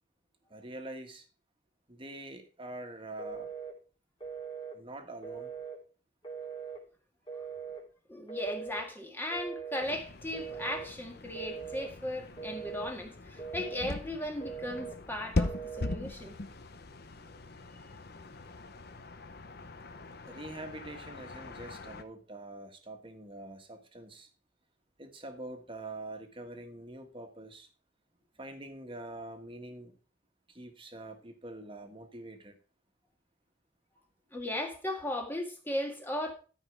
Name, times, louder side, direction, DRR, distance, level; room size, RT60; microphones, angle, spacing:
voice 1, 0.5-1.2 1.9-3.5 4.7-5.5 20.2-24.3 25.0-27.7 28.4-30.0 30.5-32.6, right 2 dB, 30° right, 1.6 m, -45 dB
Telephone, 3.2-3.8 4.2-4.8 5.2-5.8 6.2-6.8 7.3-7.8 8.3-8.9 9.3-9.9 10.3-10.9 11.3-11.9 12.4-12.9 13.4-14.0 14.4-15.0 15.4-16.0, right 6 dB, 25° left, 2.9 m, -41 dB
voice 2, 8.1-16.4 20.3-20.4 34.3-36.3, left 1 dB, 10° left, 1.8 m, -37 dB
sound 1, 9.8-22.0, left 2 dB, 55° left, 0.9 m, -40 dB
13.0 x 5.4 x 4.9 m
head